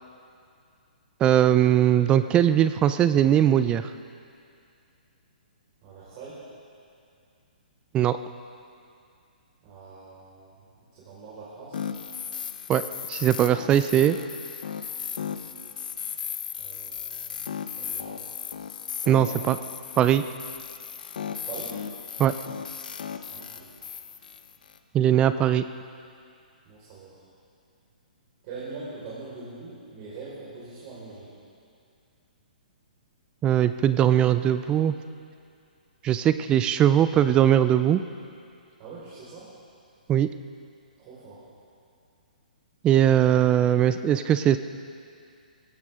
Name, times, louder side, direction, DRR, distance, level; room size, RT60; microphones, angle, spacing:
voice 1, 1.2-3.9 7.9-8.2 12.7-12.8 13.1-14.2 19.1-19.6 20.0-20.2 22.2-22.3 24.9-25.6 33.4-34.9 36.0-38.0 40.1-40.3 42.8-44.6, right 10 dB, 20° right, 12 dB, 0.4 m, -20 dB
voice 2, 5.8-6.4 9.6-11.8 16.5-18.3 19.0-19.4 21.3-21.8 23.3-23.7 26.6-27.3 28.4-31.3 38.8-39.5 41.0-41.5, right 3 dB, 40° right, -8 dB, 5.1 m, -43 dB
sound 1, 11.7-24.8, left 7 dB, 70° left, 1.0 m, -36 dB
20.5 x 16.5 x 3.8 m, 2.4 s
hypercardioid pair, 135°, 5 cm